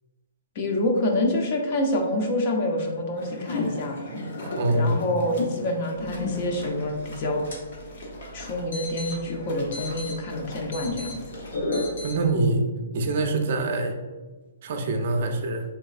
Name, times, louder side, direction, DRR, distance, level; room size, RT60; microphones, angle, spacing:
voice 1, 0.6-4.0 4.7-7.4 8.3-11.2, left 1 dB, 45° left, 2 dB, 0.6 m, -27 dB
sound 1, 3.2-12.1, left 2 dB, 60° left, 1.0 m, -34 dB
voice 2, 4.6-5.0 12.0-12.6 12.9-13.9 14.6-15.6, right 2 dB, 50° right, 4 dB, 0.5 m, -24 dB
sound 2, 6.0-12.2, equal, 80° left, 1.3 m, -41 dB
3.5 x 3.1 x 2.4 m, 1.3 s
hypercardioid pair, 150°, 0 cm